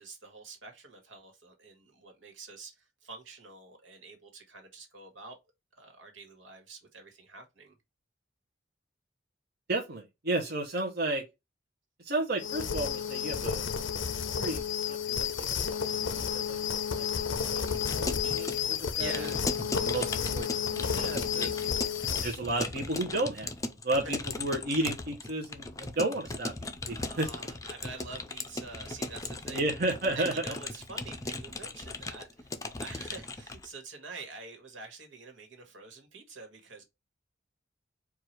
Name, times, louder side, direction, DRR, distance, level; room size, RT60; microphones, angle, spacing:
voice 1, 0.0-5.4 5.7-7.8 19.0-19.4 21.4-22.2 24.0-24.1 27.0-29.6 30.1-32.5 32.8-36.8, right 3 dB, 90° right, 1.6 m, -47 dB
voice 2, 9.7-11.2 12.0-13.7 14.4-16.6 16.9-19.3 19.8-21.5 22.2-23.5 23.8-27.3 29.5-30.4, right 2 dB, 55° right, 0.9 m, -33 dB
sound 1, 12.4-22.4, left 7 dB, 90° left, 0.6 m, -31 dB
Keyboard (musical) / Computer keyboard, 17.6-33.7, left 2 dB, 20° left, 0.5 m, -38 dB
4.7 x 2.4 x 4.5 m
head